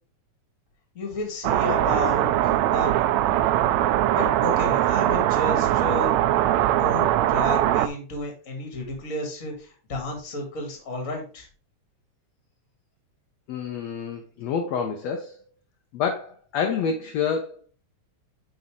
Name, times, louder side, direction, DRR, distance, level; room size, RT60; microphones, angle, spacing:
voice 1, 0.9-2.9 4.1-11.5, left 2 dB, 30° left, 3 dB, 1.9 m, -32 dB
sound 1, 1.4-7.9, right 13 dB, 80° right, 1.6 m, -21 dB
voice 2, 13.5-15.4 15.9-17.7, left 6 dB, 70° left, 4 dB, 1.7 m, -28 dB
9.4 x 4.2 x 3.7 m, 0.37 s
omnidirectional pair, 3.5 m